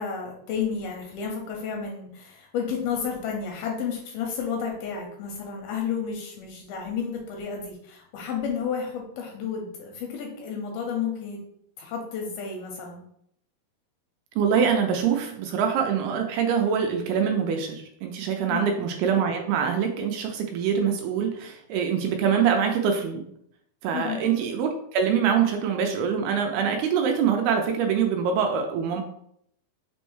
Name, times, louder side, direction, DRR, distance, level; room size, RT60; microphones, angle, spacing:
voice 1, 0.0-11.4 11.8-13.0 18.5-18.7 23.9-24.2, left 6 dB, 85° left, 1 dB, 2.3 m, -31 dB
voice 2, 14.4-23.2 23.8-29.0, right 7 dB, 80° right, 3 dB, 2.3 m, -24 dB
6.0 x 2.1 x 3.0 m, 0.71 s
omnidirectional pair, 4.6 m